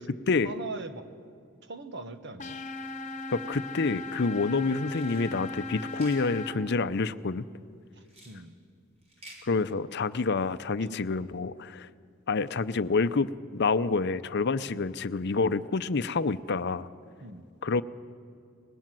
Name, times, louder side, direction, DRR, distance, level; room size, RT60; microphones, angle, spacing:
voice 1, 0.4-1.1 1.6-2.6 7.9-8.5 10.8-11.0 17.2-17.4, right 3 dB, 60° right, 9 dB, 1.5 m, -41 dB
sound 1, 2.4-6.5, left 2 dB, 40° left, 1.3 m, -37 dB
voice 2, 3.3-7.5 9.4-11.9 12.3-16.9 17.6-17.8, left 4 dB, 55° left, 14 dB, 0.6 m, -28 dB
sound 2, 4.8-5.3 5.9-6.3 8.1-8.4 9.0-9.4, right 1 dB, 30° right, 4.1 m, -50 dB
25.0 x 20.5 x 7.7 m, 2.3 s
head